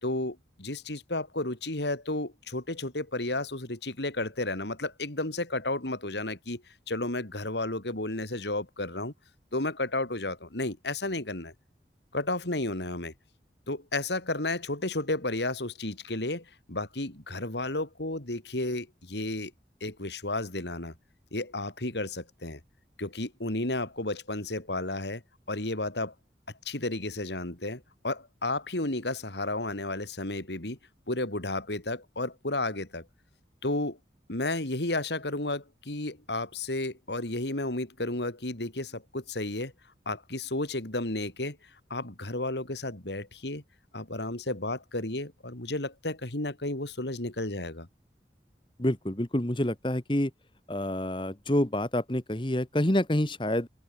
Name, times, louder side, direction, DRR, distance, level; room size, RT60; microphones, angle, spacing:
voice 1, 0.0-9.1 9.5-11.5 12.1-13.1 13.7-19.5 19.8-20.9 21.3-22.6 23.0-25.2 25.5-26.1 26.7-30.8 31.1-33.1 33.6-34.0 34.3-39.7 40.1-41.6 41.9-43.6 43.9-47.9, left 2 dB, 80° left, 3.5 m, -32 dB
voice 2, 48.8-50.3 50.7-53.7, left 1 dB, 30° left, 1.6 m, -27 dB
open air
head